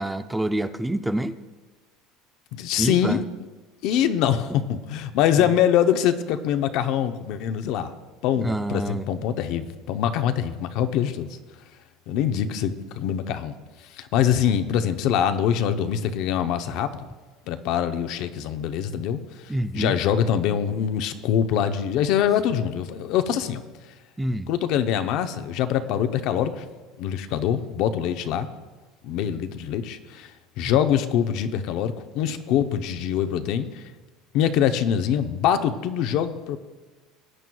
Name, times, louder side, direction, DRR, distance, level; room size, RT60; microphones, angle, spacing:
voice 1, 0.0-1.4 2.8-3.2 4.5-4.6 8.4-9.1 19.5-20.0 24.2-24.5, right 1 dB, 5° right, 10 dB, 0.4 m, -27 dB
voice 2, 2.5-3.2 3.8-7.9 8.2-11.4 12.1-13.5 13.9-16.9 17.5-23.6 24.5-26.6 27.0-28.5 29.0-30.3 30.6-33.8 34.3-36.6, left 9 dB, 60° left, 9 dB, 0.7 m, -24 dB
18.5 x 9.1 x 2.3 m, 1.3 s
supercardioid pair, 130°, 0 cm